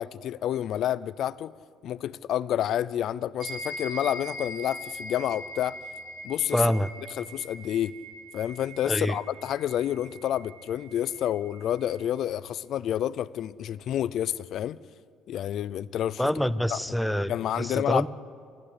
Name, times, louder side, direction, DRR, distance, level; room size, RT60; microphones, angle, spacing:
voice 1, 0.0-1.5 1.8-5.8 6.2-6.6 7.2-7.9 8.3-14.8 15.3-16.2 16.7-16.8 17.3-18.1, left 11 dB, 50° left, 17 dB, 0.5 m, -29 dB
sound 1, 3.4-12.1, equal, 30° right, 3.5 m, -42 dB
voice 2, 6.5-6.9 8.9-9.2 16.2-18.1, equal, 5° left, 14 dB, 0.6 m, -26 dB
28.0 x 14.5 x 9.7 m, 2.3 s
cardioid pair, 165°, 0 cm